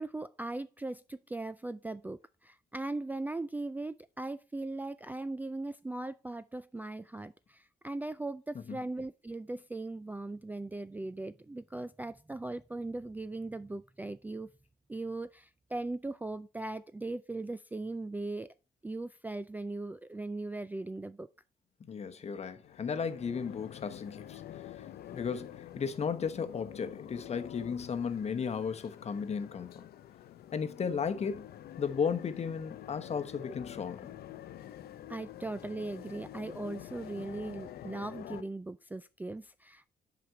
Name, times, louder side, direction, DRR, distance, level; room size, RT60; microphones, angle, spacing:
voice 1, 0.0-14.5 14.9-18.5 18.8-21.3 35.1-39.9, right 2 dB, 10° right, 0.3 m, -39 dB
voice 2, 21.9-24.4 24.8-24.9 25.1-29.8 30.5-31.5 31.8-34.1, left 6 dB, 40° left, 1.0 m, -35 dB
sound 1, 22.6-38.4, left 11 dB, 75° left, 0.6 m, -47 dB
7.8 x 5.1 x 4.4 m
cardioid pair, 100°, 16 cm